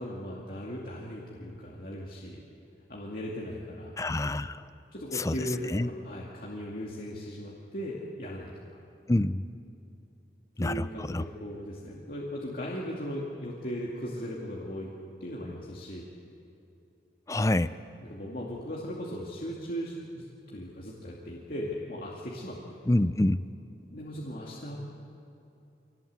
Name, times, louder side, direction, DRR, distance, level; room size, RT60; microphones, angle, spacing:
voice 1, 0.0-2.4 2.9-4.0 4.9-8.5 10.6-14.9 15.2-16.1 18.0-22.8 23.9-24.8, equal, 50° left, -4 dB, 2.4 m, -38 dB
voice 2, 4.0-4.6 5.1-5.4 5.7-5.9 9.1-9.4 10.6-11.2 17.3-17.7 22.9-23.4, left 1 dB, 15° left, 14 dB, 0.5 m, -26 dB
25.5 x 18.0 x 8.2 m, 2.7 s
head